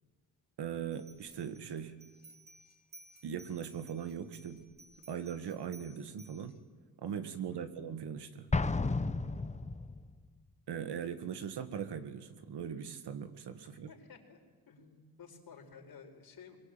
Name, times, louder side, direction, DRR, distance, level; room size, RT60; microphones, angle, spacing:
voice 1, 0.6-2.0 3.2-4.6 5.1-6.6 7.0-8.5 10.7-13.9, right 8 dB, 80° right, 10 dB, 1.9 m, -40 dB
sound 1, 0.9-6.6, right 2 dB, 25° right, 2.8 m, -58 dB
Explosion, 8.5-10.1, left 3 dB, 15° left, 1.1 m, -32 dB
voice 2, 13.7-14.4 14.7-16.6, left 6 dB, 60° left, 2 dB, 4.7 m, -54 dB
24.5 x 22.5 x 9.1 m, 1.4 s
cardioid pair, 110°, 40 cm